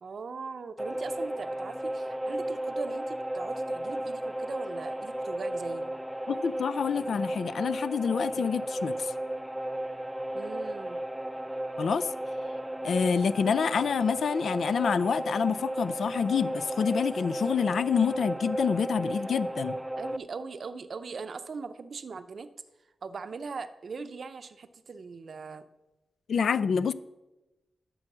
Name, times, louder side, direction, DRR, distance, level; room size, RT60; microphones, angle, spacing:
voice 1, 0.0-5.8 10.3-11.0 20.0-22.5 23.0-25.7, right 4 dB, 60° right, 11 dB, 0.6 m, -40 dB
sound 1, 0.8-20.2, right 1 dB, 5° right, 0.4 m, -34 dB
voice 2, 6.3-9.1 11.8-12.1 12.8-19.8 26.3-26.9, left 6 dB, 75° left, 16 dB, 0.3 m, -27 dB
12.0 x 6.4 x 6.0 m, 1.0 s
wide cardioid pair, 100°, 0 cm